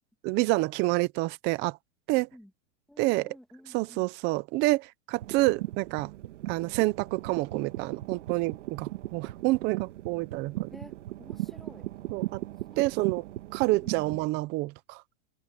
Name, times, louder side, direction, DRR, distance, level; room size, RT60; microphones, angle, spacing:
voice 1, 0.2-1.8 2.1-2.3 3.0-3.4 3.7-6.1 6.5-10.7 12.1-12.4 12.8-13.2 13.5-15.0, right 21 dB, 25° right, 0.6 m, -28 dB
voice 2, 2.9-4.1 10.7-11.9 12.7-13.2 13.8-14.0, left 1 dB, ahead, 2.0 m, -51 dB
sound 1, 5.2-14.3, right 15 dB, 70° right, 2.9 m, -38 dB
supercardioid pair, 160°, 39 cm